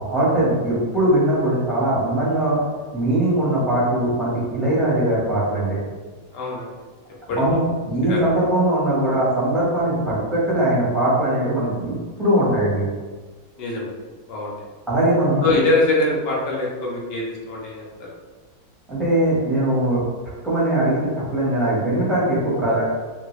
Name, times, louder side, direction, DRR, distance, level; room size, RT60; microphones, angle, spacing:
voice 1, 0.0-2.6 2.9-5.8 7.3-12.8 14.9-15.5 18.9-20.0 20.4-22.9, right 1 dB, ahead, -8 dB, 0.9 m, -20 dB
voice 2, 6.3-6.7 7.3-7.4 8.1-8.3 13.6-13.9 14.3-14.5 15.4-18.1 22.7-22.9, left 2 dB, 55° left, -4 dB, 0.6 m, -23 dB
3.2 x 2.6 x 3.1 m, 1.4 s
omnidirectional pair, 1.9 m